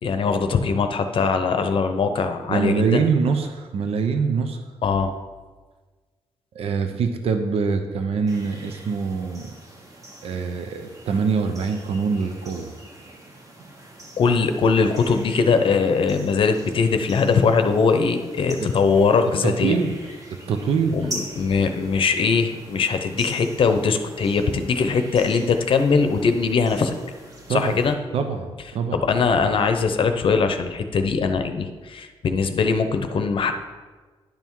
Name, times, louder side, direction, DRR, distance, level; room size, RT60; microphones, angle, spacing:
voice 1, 0.0-3.0 4.8-5.1 14.2-19.8 20.9-26.9 27.5-28.0 28.9-33.5, left 5 dB, 55° left, 7 dB, 0.7 m, -21 dB
voice 2, 2.5-4.6 6.5-9.5 10.2-12.7 18.6-18.7 19.4-20.0 20.3-21.1 27.5-27.8 28.1-29.0, right 5 dB, 70° right, 7 dB, 0.7 m, -24 dB
sound 1, 8.3-27.9, right 1 dB, 35° right, 1.3 m, -42 dB
10.5 x 5.6 x 4.6 m, 1.4 s
wide cardioid pair, 130°, 11 cm